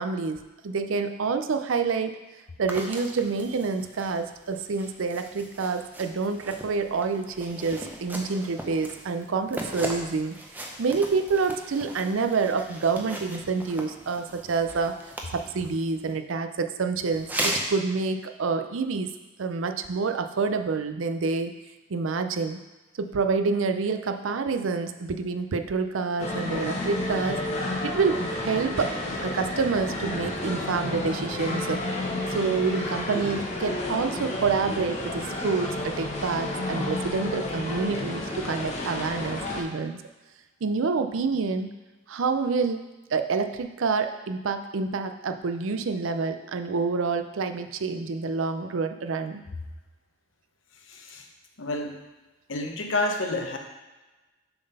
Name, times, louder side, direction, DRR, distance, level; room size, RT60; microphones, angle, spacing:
voice 1, 0.0-2.2 2.6-10.3 10.8-15.0 15.3-19.1 19.4-21.5 21.9-22.6 23.0-27.4 27.8-29.0 29.2-31.8 32.3-40.0 40.6-41.7 42.1-49.4, right 4 dB, 80° right, 8 dB, 0.5 m, -27 dB
sound 1, 2.7-16.1 17.1-17.7, right 1 dB, 10° right, 0.6 m, -38 dB
sound 2, 26.2-39.6, left 1 dB, 35° left, 0.9 m, -31 dB
voice 2, 50.9-51.2 51.6-52.0 52.5-53.6, left 2 dB, 75° left, 3 dB, 0.9 m, -29 dB
6.8 x 4.0 x 5.4 m, 1.1 s
head